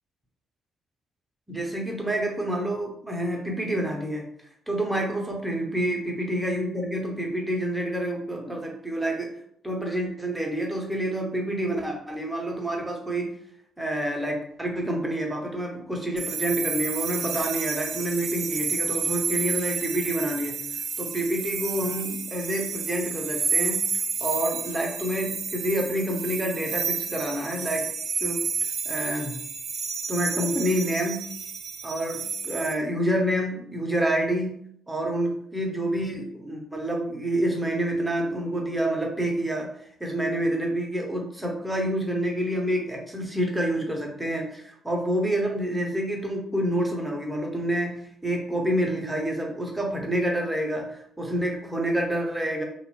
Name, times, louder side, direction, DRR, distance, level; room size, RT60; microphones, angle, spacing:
voice 1, 1.5-4.3 4.7-9.3 9.6-13.3 13.8-20.6 21.0-23.8 24.2-27.9 28.2-28.5 28.8-29.4 30.1-31.2 31.8-34.5 34.9-52.6, right 1 dB, 10° right, 0 dB, 0.9 m, -28 dB
sound 1, 16.2-32.7, right 5 dB, 60° right, 0.4 m, -30 dB
2.5 x 2.5 x 3.1 m, 0.68 s
hypercardioid pair, 50°, 0 cm